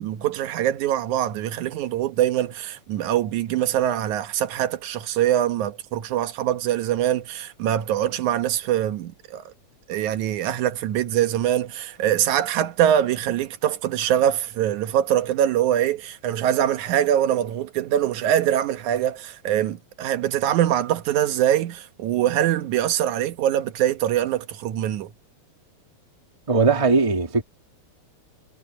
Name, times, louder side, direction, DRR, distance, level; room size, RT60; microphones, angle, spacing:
voice 1, 0.0-9.5 9.9-25.1, right 11 dB, 85° right, 2.5 m, -23 dB
voice 2, 26.5-27.4, right 4 dB, 15° right, 1.5 m, -19 dB
omnidirectional pair, 3.3 m